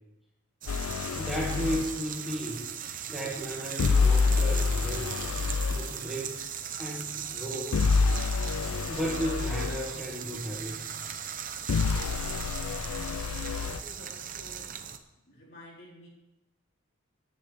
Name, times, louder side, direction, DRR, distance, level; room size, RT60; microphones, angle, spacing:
sound 1, 0.6-15.0, right 8 dB, 40° right, 0.8 m, -38 dB
sound 2, 0.7-2.0 3.8-5.9 7.7-9.8 11.7-13.8, left 4 dB, 90° left, 0.4 m, -27 dB
voice 1, 1.2-2.7 3.1-5.2 5.7-6.5 6.8-7.8 8.9-11.0, equal, ahead, -5 dB, 2.0 m, -34 dB
voice 2, 12.8-14.6 15.2-16.1, equal, 50° left, -5 dB, 4.4 m, -51 dB
17.5 x 10.0 x 3.5 m, 0.97 s
head